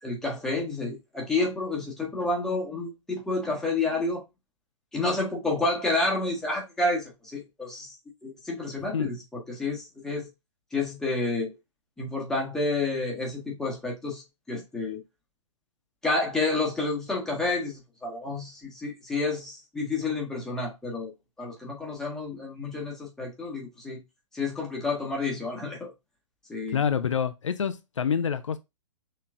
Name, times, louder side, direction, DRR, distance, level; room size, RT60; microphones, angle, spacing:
voice 1, 0.0-4.2 4.9-7.9 8.2-10.3 10.7-11.5 12.0-14.2 14.5-15.0 16.0-21.1 21.4-24.0 24.3-25.9 26.5-26.8, left 3 dB, 5° left, 1.3 m, -29 dB
voice 2, 26.7-28.6, left 7 dB, 70° left, 0.5 m, -27 dB
5.8 x 3.2 x 2.4 m
figure-of-eight pair, 115°, 17 cm